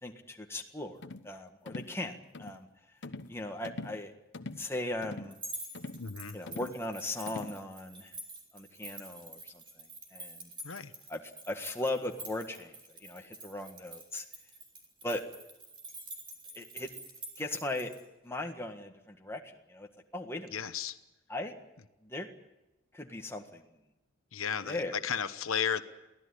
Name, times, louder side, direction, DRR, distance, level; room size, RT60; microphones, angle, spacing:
voice 1, 0.0-2.7 3.3-4.1 4.6-5.4 6.3-8.1 8.5-10.5 11.1-14.3 15.0-15.2 16.5-16.9 17.4-17.9 18.2-19.9 20.1-20.5 21.3-21.6 22.0-22.3 22.9-23.8 24.6-25.0, left 2 dB, 10° left, 3 dB, 1.7 m, -38 dB
sound 1, 1.0-1.3 1.7-2.0 2.3-2.6 3.0-3.4 3.6-4.0 4.3-4.7 5.0-5.4 5.7-6.1 6.5-6.8 7.3-7.6, left 2 dB, 60° left, 1.0 m, -43 dB
sound 2, 5.3-18.0, right 2 dB, 25° right, 4.0 m, -47 dB
voice 2, 6.0-6.4 10.6-10.9 20.5-21.0 24.3-25.8, left 7 dB, 85° left, 11 dB, 1.0 m, -34 dB
23.5 x 16.0 x 9.9 m, 0.97 s
head